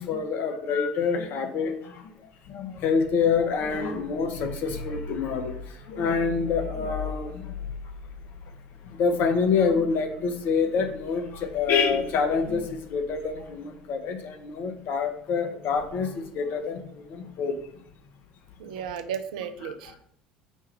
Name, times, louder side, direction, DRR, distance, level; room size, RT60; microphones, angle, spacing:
voice 1, 0.0-2.1 2.5-7.6 8.8-17.6 19.6-19.7, left 5 dB, 50° left, 5 dB, 0.7 m, -27 dB
voice 2, 18.6-20.0, right 8 dB, 65° right, 10 dB, 0.4 m, -34 dB
4.5 x 2.3 x 4.4 m, 0.66 s
figure-of-eight pair, 65°, 4 cm